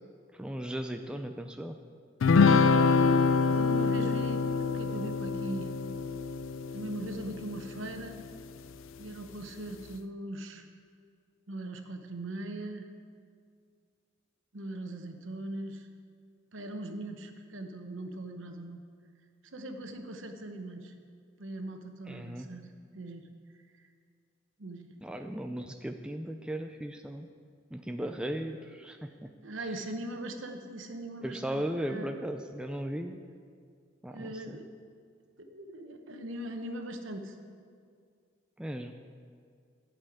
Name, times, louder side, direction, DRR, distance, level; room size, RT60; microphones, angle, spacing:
voice 1, 0.3-1.8 22.1-22.5 25.0-27.3 27.7-29.3 29.6-29.7 31.2-33.2 34.0-34.6 38.6-38.9, right 1 dB, 5° right, 5 dB, 0.3 m, -37 dB
sound 1, 2.2-7.9, left 4 dB, 75° left, 0.4 m, -25 dB
voice 2, 3.5-5.7 6.7-8.2 9.0-10.7 11.5-12.9 14.5-15.9 16.5-18.8 19.4-20.9 21.4-22.7 22.9-23.2 24.6-24.9 29.4-32.1 34.1-34.7 35.4-37.4, right 1 dB, 70° right, 5 dB, 1.0 m, -40 dB
11.5 x 5.5 x 8.6 m, 2.2 s
head